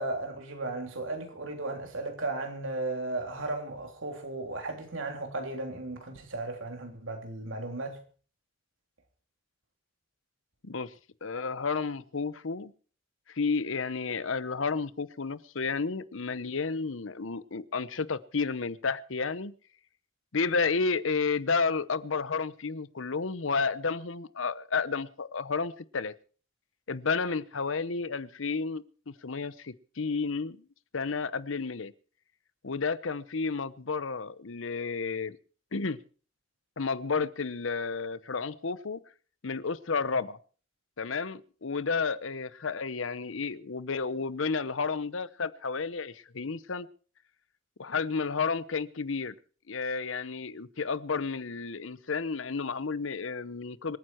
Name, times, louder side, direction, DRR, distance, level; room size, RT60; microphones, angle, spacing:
voice 1, 0.0-8.0, right 2 dB, 80° right, 3.4 m, -35 dB
voice 2, 10.6-10.9 11.2-12.7 13.3-19.5 20.3-26.1 26.9-30.6 30.9-31.9 32.6-35.4 35.7-36.0 36.8-39.0 39.4-40.4 41.0-46.9 47.8-49.3 49.7-54.0, left 4 dB, 80° left, 0.8 m, -31 dB
26.0 x 9.5 x 4.5 m
head